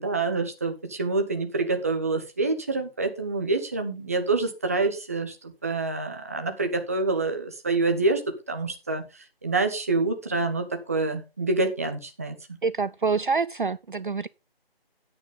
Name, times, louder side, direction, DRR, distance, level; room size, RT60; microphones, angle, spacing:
voice 1, 0.0-8.2 8.5-9.0 9.4-12.3, right 3 dB, 15° right, 1.0 m, -26 dB
voice 2, 12.6-14.3, right 4 dB, 55° right, 0.5 m, -26 dB
10.5 x 9.5 x 3.7 m
figure-of-eight pair, 160°, 30 cm